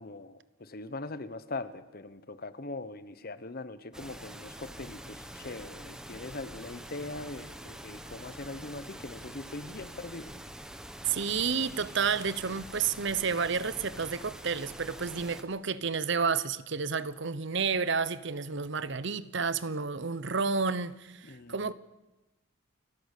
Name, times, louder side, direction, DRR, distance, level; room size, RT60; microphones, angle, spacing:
voice 1, 0.0-10.4 21.2-21.7, left 2 dB, 50° left, 1.1 m, -41 dB
sound 1, 3.9-15.4, equal, 5° right, 1.2 m, -45 dB
voice 2, 11.1-21.7, right 5 dB, 60° right, 0.9 m, -30 dB
29.0 x 12.0 x 8.4 m
head